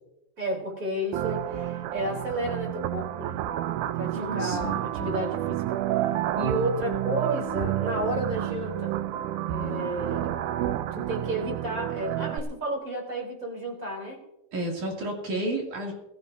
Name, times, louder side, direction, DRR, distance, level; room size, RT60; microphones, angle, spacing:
voice 1, 0.4-3.4 3.9-5.8 6.3-9.0 9.5-10.3 10.9-14.2, right 1 dB, 25° right, 0 dB, 3.6 m, -32 dB
sound 1, 1.1-12.4, right 13 dB, 80° right, 1.8 m, -30 dB
voice 2, 4.1-4.8 14.5-15.9, right 1 dB, 60° right, -1 dB, 3.9 m, -31 dB
22.5 x 14.0 x 2.7 m, 0.89 s
omnidirectional pair, 4.2 m